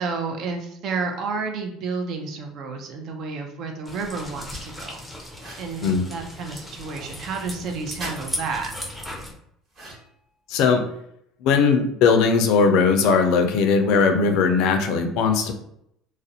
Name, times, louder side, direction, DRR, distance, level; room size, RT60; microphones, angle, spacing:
voice 1, 0.0-5.0 5.6-8.7, right 4 dB, 55° right, 4 dB, 0.5 m, -31 dB
sound 1, 3.9-9.3, left 1 dB, 5° right, 0.6 m, -37 dB
sound 2, 5.3-5.7 8.0-8.2 9.7-10.2, right 1 dB, 40° right, 1.1 m, -38 dB
voice 2, 10.5-10.8 11.4-15.5, left 5 dB, 70° left, 6 dB, 0.4 m, -19 dB
2.4 x 2.0 x 2.7 m, 0.73 s
supercardioid pair, 105°, 0 cm